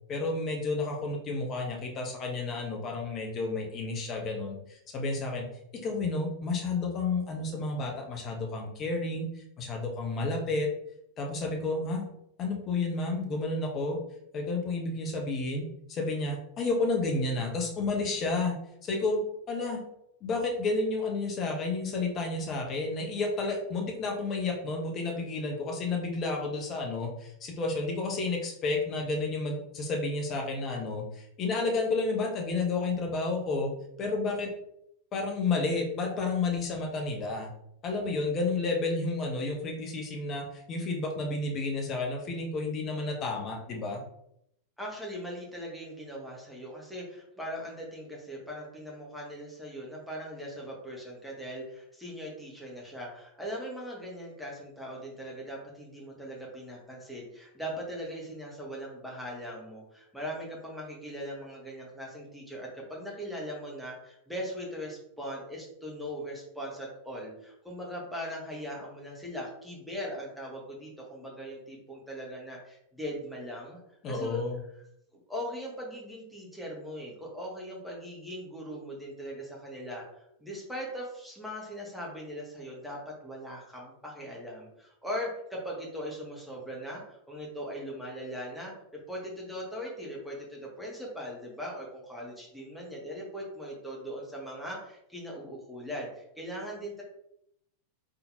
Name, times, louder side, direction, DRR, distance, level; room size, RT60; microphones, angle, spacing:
voice 1, 0.1-5.5 5.7-10.7 11.2-12.0 12.4-14.0 14.3-18.6 18.8-19.2 19.5-19.8 20.2-33.7 34.0-34.5 35.1-37.5 37.8-44.0 74.0-74.6, left 3 dB, 30° left, 2 dB, 1.0 m, -31 dB
voice 2, 44.8-73.8 74.1-74.4 75.3-96.1 96.4-97.0, equal, ahead, -3 dB, 1.4 m, -40 dB
3.9 x 3.8 x 2.8 m, 0.77 s
figure-of-eight pair, 90°, 0 cm